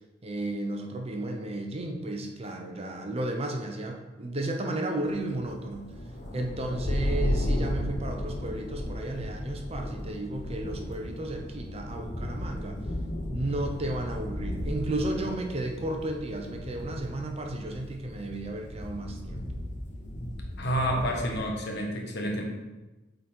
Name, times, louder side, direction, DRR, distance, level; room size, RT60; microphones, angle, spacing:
voice 1, 0.2-5.9 6.3-12.8 13.3-19.4, right 1 dB, 30° right, 3 dB, 0.7 m, -33 dB
sound 1, 5.1-21.5, left 1 dB, 40° left, 0.9 m, -34 dB
voice 2, 20.6-22.4, equal, 60° left, 1 dB, 1.3 m, -29 dB
8.1 x 4.0 x 4.3 m, 1.1 s
head